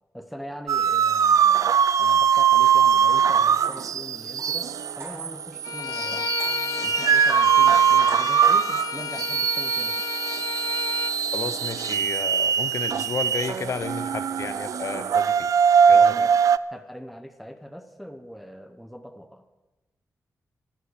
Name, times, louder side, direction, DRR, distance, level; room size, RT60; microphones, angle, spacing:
voice 1, 0.1-6.4 6.8-10.0 15.9-16.4 16.7-19.5, equal, ahead, 7 dB, 0.9 m, -41 dB
sound 1, 0.7-16.6, right 8 dB, 70° right, 0.4 m, -21 dB
sound 2, 3.0-5.6 6.4-7.0 8.1-8.6, right 2 dB, 50° right, 3.9 m, -45 dB
Bowed string instrument, 5.6-11.1, left 9 dB, 75° left, 0.4 m, -32 dB
voice 2, 11.3-15.5 15.9-16.2, left 5 dB, 55° left, 11 dB, 1.0 m, -32 dB
24.0 x 8.1 x 6.4 m, 1.1 s
wide cardioid pair, 170°, 6 cm